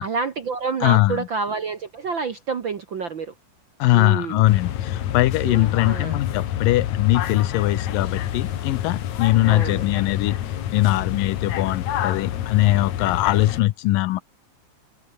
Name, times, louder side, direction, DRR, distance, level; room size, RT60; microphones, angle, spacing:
voice 1, 0.0-3.3 3.9-4.4 5.4-6.2 9.5-9.8, right 5 dB, 55° right, 1.4 m, -28 dB
voice 2, 0.8-1.3 3.8-10.4 10.7-14.2, left 17 dB, 80° left, 2.5 m, -21 dB
sound 1, 4.5-13.6, left 11 dB, 65° left, 2.6 m, -28 dB
omnidirectional pair, 4.0 m